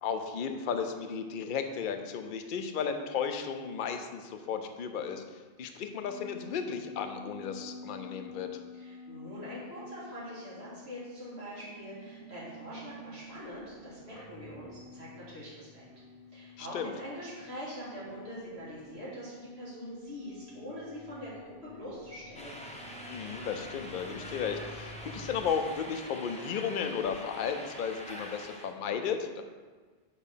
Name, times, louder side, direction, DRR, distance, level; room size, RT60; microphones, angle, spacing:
voice 1, 0.0-5.2 5.6-8.5 16.6-16.9 23.1-29.4, left 6 dB, 60° left, 6 dB, 0.7 m, -34 dB
sound 1, 6.0-25.5, left 1 dB, 65° right, 2.0 m, -50 dB
voice 2, 8.7-15.8 16.3-22.6, equal, 90° right, -10 dB, 2.4 m, -43 dB
sound 2, 22.3-28.7, equal, 10° left, 0.7 m, -44 dB
8.0 x 3.1 x 5.6 m, 1.4 s
omnidirectional pair, 1.1 m